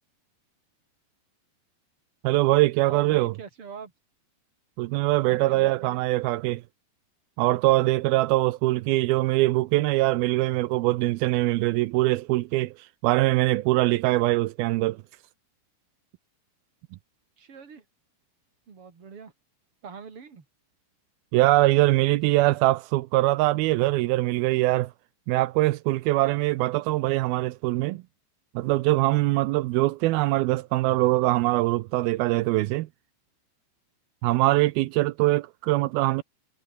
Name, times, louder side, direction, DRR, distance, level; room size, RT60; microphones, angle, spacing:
voice 1, 2.2-3.3 4.8-6.6 7.4-15.0 21.3-24.9 25.3-28.0 28.6-32.9 34.2-36.2, right 18 dB, 85° right, 2.3 m, -23 dB
voice 2, 2.9-3.9 5.2-6.0 17.4-17.8 18.7-19.3 19.8-20.5, right 6 dB, 35° right, 3.9 m, -42 dB
omnidirectional pair, 5.0 m